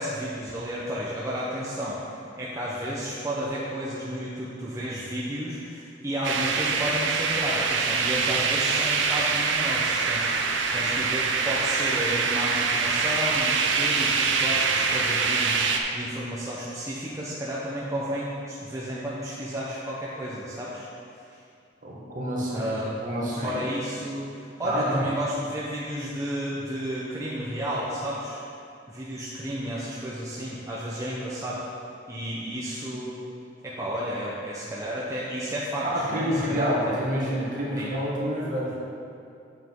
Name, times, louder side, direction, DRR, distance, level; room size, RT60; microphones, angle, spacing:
voice 1, 0.0-20.9 21.3-21.4 22.5-23.0 23.3-28.4 28.9-31.7 32.1-33.2 33.6-37.0 37.8-37.9, equal, 15° right, -7 dB, 0.8 m, -32 dB
sound 1, 6.2-15.8, right 4 dB, 85° right, 0.7 m, -24 dB
voice 2, 21.8-23.6 24.6-25.0 35.8-38.8, equal, 45° right, -5 dB, 1.8 m, -28 dB
8.8 x 7.5 x 3.7 m, 2.5 s
head